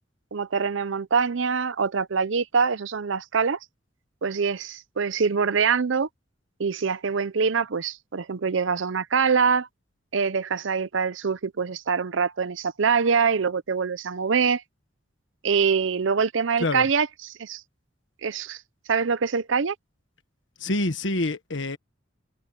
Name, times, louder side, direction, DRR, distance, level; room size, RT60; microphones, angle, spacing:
voice 1, 0.3-3.6 4.2-6.1 6.6-9.7 10.1-14.6 15.4-17.6 18.2-18.6 18.9-19.7, right 5 dB, 75° right, 0.6 m, -24 dB
voice 2, 20.6-21.8, left 2 dB, 70° left, 1.4 m, -26 dB
head